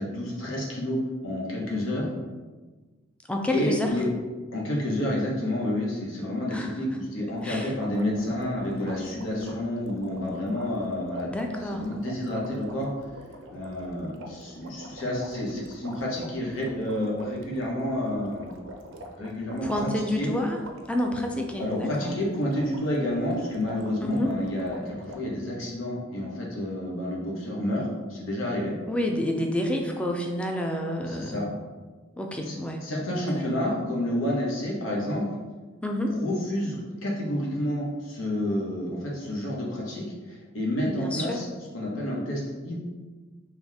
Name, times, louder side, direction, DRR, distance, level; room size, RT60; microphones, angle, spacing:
voice 1, 0.0-2.1 3.5-4.0 4.5-11.3 11.6-12.9 13.5-18.5 19.2-20.3 21.6-28.7 31.1-31.5 32.4-32.6 32.8-35.2 36.1-41.5 41.7-42.8, left 1 dB, 85° left, -3 dB, 1.1 m, -29 dB
voice 2, 3.3-3.9 6.5-6.7 7.4-7.7 11.2-11.8 19.6-20.6 20.9-22.1 24.0-24.3 28.9-31.5 32.2-33.6 35.8-36.2 40.9-41.4, left 1 dB, 5° left, 2 dB, 0.4 m, -29 dB
sound 1, 7.3-25.2, right 1 dB, 80° right, 0.5 m, -45 dB
4.0 x 3.0 x 3.5 m, 1.3 s
head